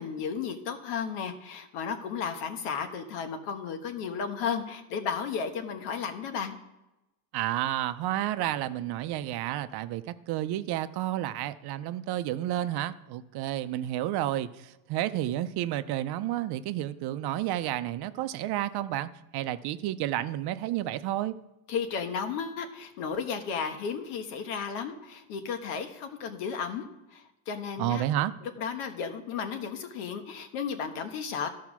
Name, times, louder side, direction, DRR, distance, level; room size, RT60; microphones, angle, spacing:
voice 1, 0.0-6.6 21.7-26.9 27.1-28.0 28.4-31.5, left 6 dB, 85° left, 7 dB, 1.4 m, -34 dB
voice 2, 7.3-21.3 27.8-28.3, right 13 dB, 55° right, 12 dB, 0.7 m, -31 dB
13.0 x 4.7 x 6.1 m, 0.98 s
cardioid pair, 125°, 47 cm